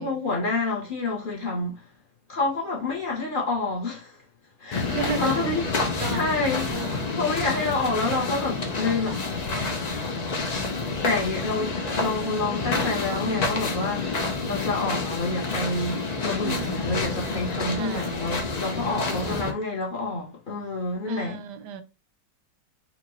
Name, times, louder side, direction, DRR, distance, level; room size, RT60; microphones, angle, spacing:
voice 1, 0.0-1.8 2.3-4.2 4.6-4.9 5.2-9.2 11.0-21.4, left 3 dB, 35° left, 1.0 m, -28 dB
sound 1, 4.7-19.5, left 3 dB, 75° left, 0.3 m, -29 dB
voice 2, 4.8-5.5 6.0-6.3 6.7-7.2 7.5-7.9 9.1-9.3 16.4-17.1 17.7-18.2 19.1-19.4 21.0-21.8, right 7 dB, 85° right, 1.2 m, -35 dB
4.4 x 2.5 x 3.0 m
omnidirectional pair, 1.7 m